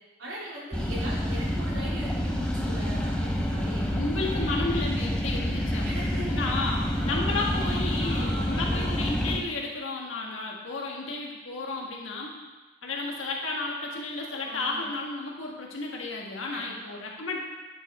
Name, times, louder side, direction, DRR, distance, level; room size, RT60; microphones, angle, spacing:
voice 1, 0.2-3.9 5.8-6.5 6.9-7.3 8.0-9.0 14.4-14.9 16.5-16.9, equal, 85° right, -6 dB, 3.0 m, -39 dB
sound 1, 0.7-9.4, equal, 5° left, 0.7 m, -28 dB
voice 2, 3.9-12.4 12.8-17.4, left 3 dB, 90° left, -1 dB, 1.6 m, -33 dB
10.5 x 5.0 x 4.3 m, 1.2 s
head